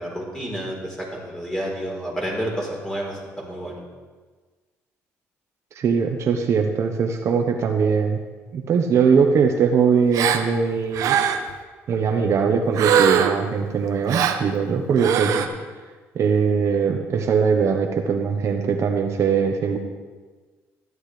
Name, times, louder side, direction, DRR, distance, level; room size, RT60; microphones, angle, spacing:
voice 1, 0.0-3.8 15.2-15.4, equal, 10° left, -3 dB, 4.1 m, -30 dB
voice 2, 5.7-8.2 8.5-11.2 11.9-15.4 16.1-19.8, right 6 dB, 55° right, 3 dB, 1.1 m, -21 dB
Gasp, 10.1-10.5 10.9-11.5 12.8-13.5 14.1-14.4 15.0-15.5, right 8 dB, 75° right, 0.8 m, -20 dB
14.0 x 11.0 x 3.4 m, 1.4 s
cardioid pair, 90°, 6 cm